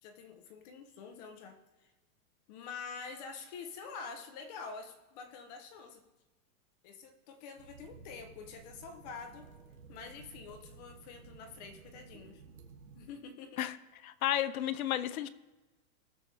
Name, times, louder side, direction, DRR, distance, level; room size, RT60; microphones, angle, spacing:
voice 1, 0.0-1.9 2.5-6.0 6.8-9.5 9.9-12.4 13.0-13.6, left 5 dB, 30° left, 6 dB, 0.9 m, -47 dB
sound 1, 7.6-13.1, right 5 dB, 80° right, 2.2 m, -54 dB
voice 2, 14.0-15.3, left 12 dB, 85° left, 14 dB, 0.9 m, -32 dB
21.0 x 7.0 x 3.5 m, 1.1 s
supercardioid pair, 175°, 41 cm